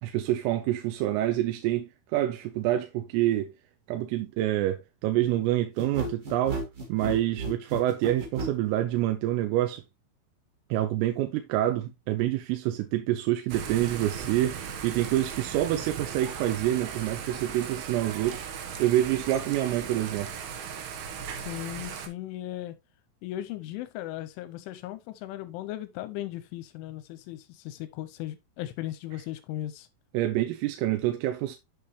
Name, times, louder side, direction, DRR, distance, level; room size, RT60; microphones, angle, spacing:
voice 1, 0.0-3.5 3.9-6.6 6.9-9.8 10.7-18.5 18.8-20.3 30.1-31.6, right 14 dB, 85° right, 3.4 m, -27 dB
sound 1, 5.8-8.6, right 2 dB, 35° right, 2.8 m, -33 dB
Thunder / Rain, 13.5-22.1, right 7 dB, 70° right, 2.7 m, -37 dB
voice 2, 21.3-22.8 23.2-29.9, left 14 dB, 80° left, 3.0 m, -37 dB
8.4 x 6.6 x 3.1 m
omnidirectional pair, 5.9 m